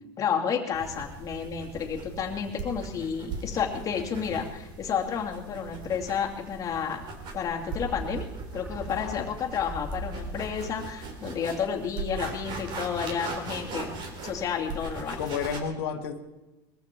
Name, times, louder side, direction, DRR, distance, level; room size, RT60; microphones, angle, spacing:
voice 1, 0.2-7.0 7.3-8.3 8.5-13.9 14.2-15.2, left 7 dB, 25° left, 0 dB, 2.4 m, -31 dB
sound 1, 0.7-15.6, right 3 dB, 40° right, 3.1 m, -39 dB
sound 2, 7.6-12.2 12.5-12.6, right 1 dB, 15° right, 7.3 m, -40 dB
voice 2, 8.9-9.3 15.2-16.2, left 7 dB, 90° left, 4 dB, 1.7 m, -32 dB
21.0 x 14.5 x 4.5 m, 1.1 s
supercardioid pair, 150°, 12 cm